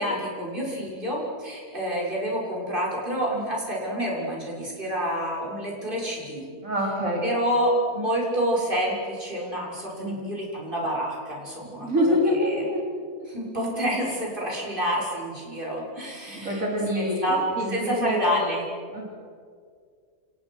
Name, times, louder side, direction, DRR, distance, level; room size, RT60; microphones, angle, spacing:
voice 1, 0.0-6.5 7.2-12.6 13.3-16.6 16.9-17.4 17.7-18.6, equal, 35° right, -3 dB, 6.6 m, -28 dB
voice 2, 6.6-7.3 9.9-10.3 11.8-12.8 16.3-17.3 17.6-18.4 18.9-19.0, equal, 65° right, -3 dB, 4.4 m, -26 dB
29.5 x 28.5 x 6.4 m, 2.1 s
omnidirectional pair, 1.5 m